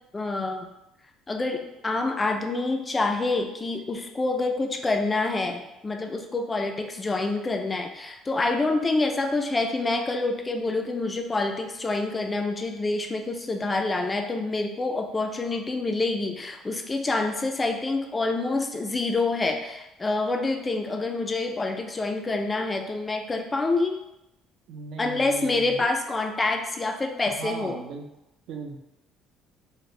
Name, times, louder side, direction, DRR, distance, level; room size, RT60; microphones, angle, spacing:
voice 1, 0.1-0.7 1.3-24.0 25.0-27.8, left 3 dB, 20° left, 4 dB, 0.3 m, -27 dB
voice 2, 24.7-25.9 27.2-28.1 28.5-28.8, right 4 dB, 65° right, 3 dB, 0.5 m, -37 dB
4.2 x 2.1 x 3.1 m, 0.90 s
cardioid pair, 125°, 0 cm